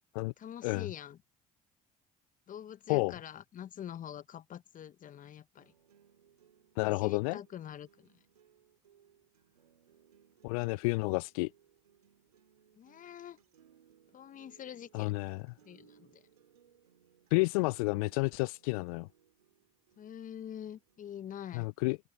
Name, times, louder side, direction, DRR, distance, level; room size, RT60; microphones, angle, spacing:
voice 1, 0.4-1.2 2.5-5.7 6.8-8.1 12.8-13.4 14.1-15.2 15.6-16.2 20.0-21.7, left 10 dB, 45° left, 1.2 m, -45 dB
sound 1, 5.6-21.6, right 9 dB, 85° right, 3.9 m, -66 dB
voice 2, 6.8-7.4 10.4-11.5 14.9-15.4 17.3-19.1 21.5-22.0, left 27 dB, 70° left, 0.4 m, -30 dB
open air
figure-of-eight pair, 55°, 19 cm